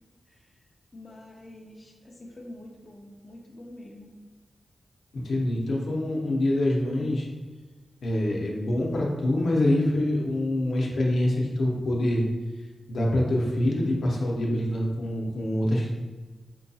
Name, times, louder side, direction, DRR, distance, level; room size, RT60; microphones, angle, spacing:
voice 1, 0.3-0.6 0.9-4.1, left 1 dB, 25° left, -2 dB, 0.4 m, -46 dB
voice 2, 5.1-7.3 8.0-12.2 12.9-15.9, left 1 dB, 75° left, -2 dB, 0.7 m, -25 dB
4.5 x 2.3 x 2.7 m, 1.3 s
wide cardioid pair, 130°, 0 cm